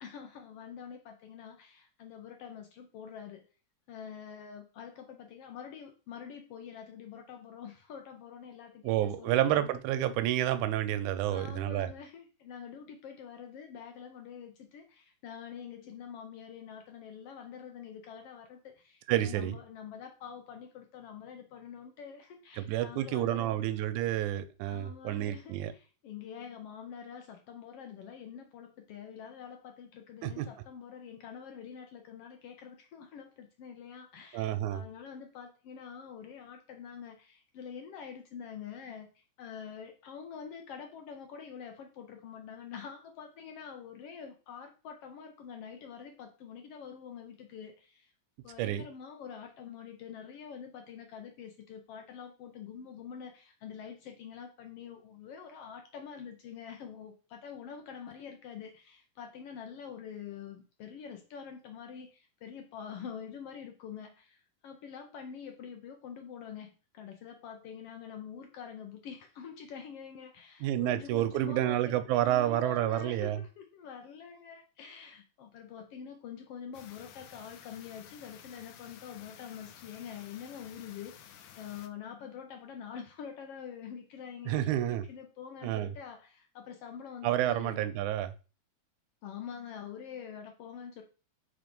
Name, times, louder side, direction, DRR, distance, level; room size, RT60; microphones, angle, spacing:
voice 1, 0.0-3.5 3.9-9.8 11.3-23.6 24.6-48.1 48.4-87.8 89.2-91.0, left 7 dB, 75° left, 4 dB, 1.4 m, -46 dB
voice 2, 8.8-11.9 19.1-19.6 22.5-25.7 30.2-30.5 34.3-34.8 48.6-48.9 70.6-73.4 84.5-85.1 85.6-85.9 87.2-88.3, right 13 dB, 90° right, 11 dB, 2.0 m, -29 dB
sound 1, 76.7-81.9, left 9 dB, 90° left, 2.1 m, -53 dB
4.7 x 3.8 x 5.2 m, 0.34 s
omnidirectional pair, 3.4 m